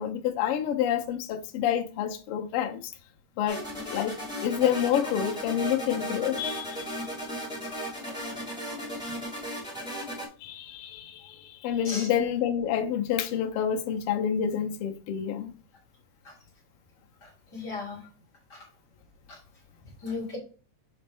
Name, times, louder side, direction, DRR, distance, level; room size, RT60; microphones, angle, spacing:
voice 1, 0.0-2.8 3.4-3.6 3.9-4.1 4.4-6.8 10.4-11.1 11.6-15.5, left 9 dB, 90° left, 1.2 m, -28 dB
sound 1, 3.5-10.3, equal, ahead, 2.6 m, -36 dB
voice 2, 17.2-18.0 18.5-18.6 19.3-19.4 20.0-20.4, left 3 dB, 40° left, 1.9 m, -36 dB
7.0 x 4.2 x 3.4 m
omnidirectional pair, 3.5 m